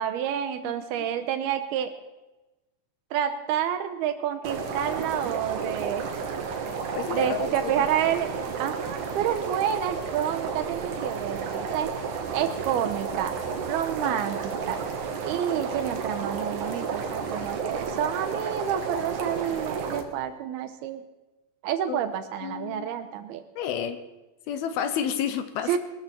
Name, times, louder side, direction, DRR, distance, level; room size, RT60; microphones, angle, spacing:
voice 1, 0.0-1.9 3.1-6.1 7.1-8.3 8.5-11.9 12.3-13.4 13.7-14.8 15.2-21.0 21.6-23.4 25.7-25.8, right 10 dB, 75° right, 8 dB, 2.7 m, -29 dB
voice 2, 0.6-1.1 6.9-7.9 21.9-22.0 22.4-22.9 23.6-24.0 24.5-25.8, left 8 dB, 75° left, 10 dB, 2.6 m, -31 dB
sound 1, 4.4-20.0, right 5 dB, 60° right, 2.4 m, -32 dB
21.0 x 14.0 x 4.4 m, 1.1 s
omnidirectional pair, 4.8 m